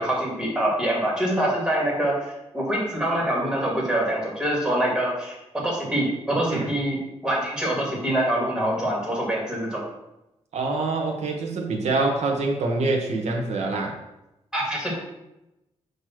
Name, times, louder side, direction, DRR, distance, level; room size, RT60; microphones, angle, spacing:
voice 1, 0.0-2.2 2.5-5.4 5.6-9.8 14.5-15.0, right 1 dB, 5° right, -4 dB, 2.4 m, -25 dB
voice 2, 10.5-14.0, right 3 dB, 75° right, 1 dB, 1.2 m, -25 dB
6.6 x 3.2 x 5.9 m, 0.91 s
wide cardioid pair, 145°, 11 cm